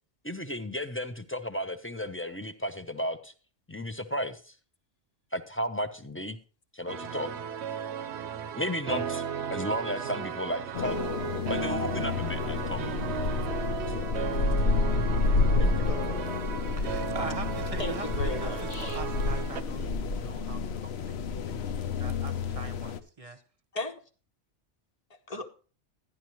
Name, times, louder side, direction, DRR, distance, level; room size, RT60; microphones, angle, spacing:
voice 1, 0.2-3.3 3.7-4.5 5.3-6.4 6.7-7.3 8.5-9.2 9.5-11.0 11.5-12.8 13.9-14.1 15.6-15.9, equal, 15° left, 8 dB, 0.5 m, -34 dB
sound 1, 6.9-19.6, right 8 dB, 70° right, 0.9 m, -36 dB
sound 2, 10.7-23.0, left 4 dB, 65° left, 0.9 m, -29 dB
voice 2, 15.9-16.4 17.8-19.0 23.7-24.0 25.3-25.5, left 2 dB, 35° left, 5 dB, 1.0 m, -36 dB
voice 3, 16.8-23.4, right 4 dB, 30° right, 8 dB, 0.9 m, -43 dB
12.0 x 10.5 x 3.0 m, 0.37 s
omnidirectional pair, 1.2 m